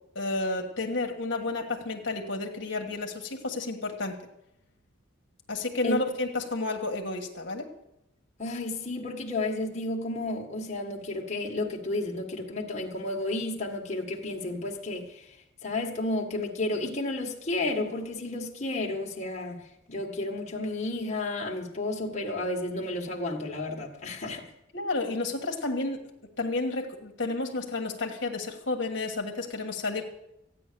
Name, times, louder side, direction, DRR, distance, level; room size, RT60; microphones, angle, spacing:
voice 1, 0.1-4.2 5.5-7.7 24.7-26.0 26.4-30.0, left 2 dB, 60° left, 2 dB, 1.5 m, -31 dB
voice 2, 8.4-15.4 15.6-24.5, left 2 dB, 35° left, -1 dB, 1.6 m, -32 dB
14.5 x 9.6 x 6.8 m, 0.84 s
head